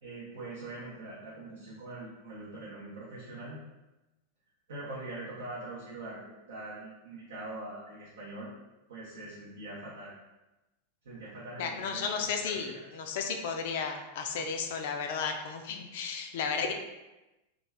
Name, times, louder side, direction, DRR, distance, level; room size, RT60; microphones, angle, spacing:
voice 1, 0.0-3.6 4.7-8.5 8.9-10.1 11.0-12.1 12.3-12.8, right 2 dB, 65° right, -6 dB, 0.6 m, -43 dB
voice 2, 11.6-16.7, left 5 dB, 55° left, 4 dB, 0.3 m, -33 dB
2.4 x 2.2 x 3.2 m, 1.0 s
figure-of-eight pair, 90°, 0 cm